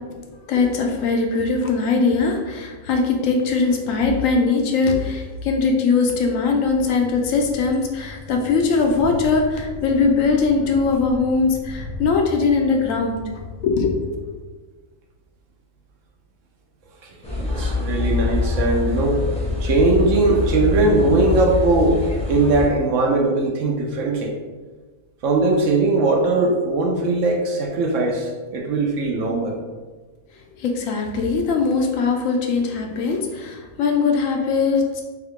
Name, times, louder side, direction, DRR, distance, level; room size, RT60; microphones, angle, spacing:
voice 1, 0.5-13.2 13.6-13.9 30.6-35.0, left 4 dB, 70° left, 2 dB, 1.0 m, -20 dB
Train, 6.6-14.4, left 2 dB, 35° right, 0.5 m, -37 dB
voice 2, 17.0-19.2 19.6-22.0 22.3-24.3 25.2-29.6, right 3 dB, 65° right, 1 dB, 0.9 m, -20 dB
sound 1, 17.2-22.7, left 3 dB, 5° left, 0.6 m, -24 dB
3.6 x 3.5 x 3.6 m, 1.3 s
omnidirectional pair, 1.5 m